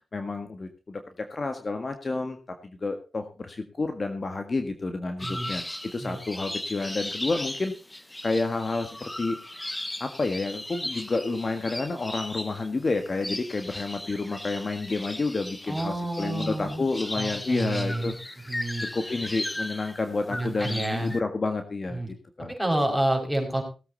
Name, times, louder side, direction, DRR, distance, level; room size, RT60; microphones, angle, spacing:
voice 1, 0.1-5.6 5.9-9.4 10.0-22.0 22.4-22.5, left 3 dB, 45° left, 6 dB, 1.7 m, -30 dB
sound 1, 5.2-21.2, left 1 dB, 15° left, 1.0 m, -37 dB
voice 2, 5.2-5.5 6.0-6.2 15.7-16.9 17.1-18.2 18.5-18.8 20.3-21.1 21.9-22.1 22.5-23.6, right 1 dB, ahead, 1 dB, 5.6 m, -29 dB
18.5 x 8.3 x 4.1 m, 0.33 s
cardioid pair, 65°, 0 cm